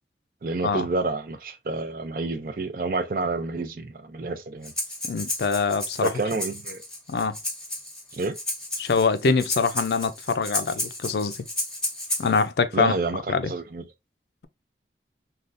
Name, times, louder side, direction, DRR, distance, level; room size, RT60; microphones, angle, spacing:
voice 1, 0.4-4.7 6.0-6.8 8.1-8.4 12.7-13.8, right 3 dB, 50° right, 0.5 m, -29 dB
Breathing, 4.6-12.4, left 1 dB, 5° left, 0.9 m, -32 dB
voice 2, 5.1-6.1 7.1-7.4 8.8-11.4 12.2-12.9 13.3-13.5, left 4 dB, 70° left, 0.4 m, -24 dB
3.5 x 2.3 x 2.5 m
head